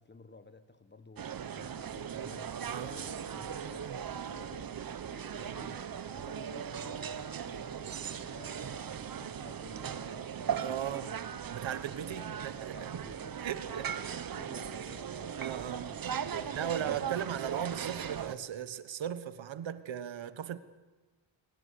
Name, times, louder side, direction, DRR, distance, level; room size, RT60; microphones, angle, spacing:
voice 1, 0.0-4.7 5.1-11.1 11.5-11.6 12.1-13.3 13.7-14.0 14.3-17.1, left 3 dB, 25° left, 1.4 m, -53 dB
sound 1, 1.2-18.4, right 8 dB, 50° right, 1.0 m, -38 dB
voice 2, 10.6-11.1 11.5-12.2 12.6-13.0 13.4-13.9 15.4-15.8 16.5-20.6, right 9 dB, 80° right, 1.3 m, -37 dB
21.5 x 19.5 x 8.4 m
wide cardioid pair, 135°, 45 cm